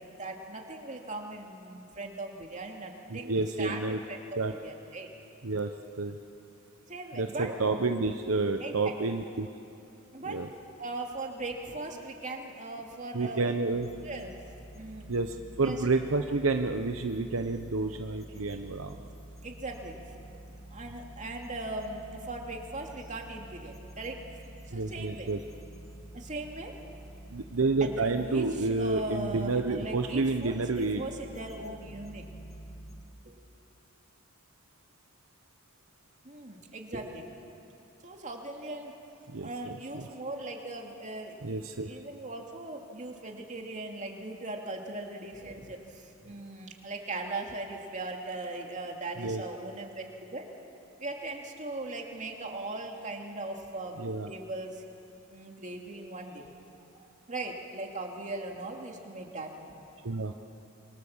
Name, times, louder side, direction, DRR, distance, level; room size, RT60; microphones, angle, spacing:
voice 1, 0.0-5.1 6.9-7.6 8.6-9.1 10.1-10.5 10.8-13.5 14.0-14.3 14.7-15.1 15.6-15.8 19.4-20.0 20.3-20.4 20.7-24.2 24.7-25.3 26.1-26.7 27.8-32.3 33.2-33.4 36.2-37.3 38.0-38.9 39.4-50.5 51.0-54.8 55.3-60.1, right 2 dB, 35° right, 2 dB, 2.5 m, -39 dB
voice 2, 3.1-4.0 4.4-4.5 5.4-5.7 6.0-6.2 7.1-9.5 10.3-10.5 13.1-13.9 15.1-19.0 24.7-25.4 27.3-31.0 39.3-40.0 41.4-41.9 49.2-49.4 54.0-54.3 60.0-60.3, right 3 dB, 70° right, 5 dB, 1.0 m, -29 dB
sound 1, 13.7-33.0, right 1 dB, 15° left, 2.1 m, -48 dB
27.0 x 24.0 x 7.3 m, 2.7 s
head